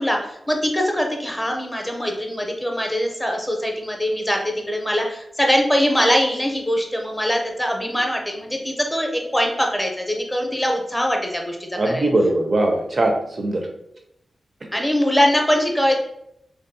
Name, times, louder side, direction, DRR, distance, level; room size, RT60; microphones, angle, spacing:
voice 1, 0.0-12.1 14.7-16.0, equal, 10° left, 2 dB, 0.5 m, -22 dB
voice 2, 11.7-13.7 14.6-14.7, right 2 dB, 50° right, 2 dB, 0.4 m, -21 dB
2.6 x 2.3 x 2.5 m, 0.77 s
cardioid pair, 70°, 0 cm